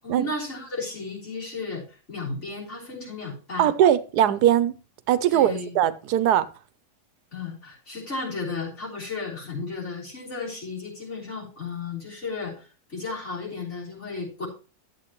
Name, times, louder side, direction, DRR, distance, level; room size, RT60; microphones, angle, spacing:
voice 1, 0.0-3.7 5.3-5.8 7.3-14.5, left 3 dB, 45° left, 3.8 m, -34 dB
voice 2, 3.6-4.7 5.1-6.5, right 11 dB, 80° right, 1.2 m, -20 dB
11.0 x 7.7 x 3.0 m
omnidirectional pair, 1.7 m